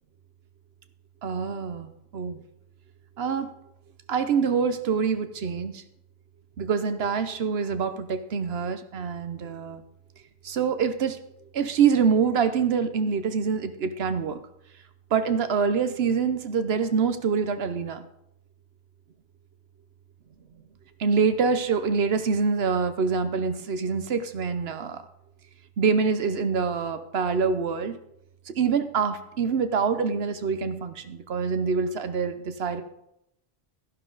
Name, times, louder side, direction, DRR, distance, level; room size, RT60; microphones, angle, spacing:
voice 1, 1.2-1.9 2.1-2.4 3.2-3.5 4.1-5.8 6.6-9.8 10.4-11.2 11.5-14.4 15.1-18.0 21.0-25.0 25.8-28.0 28.5-32.8, right 5 dB, 75° right, 10 dB, 1.1 m, -25 dB
12.0 x 11.5 x 3.9 m, 0.81 s
omnidirectional pair, 1.0 m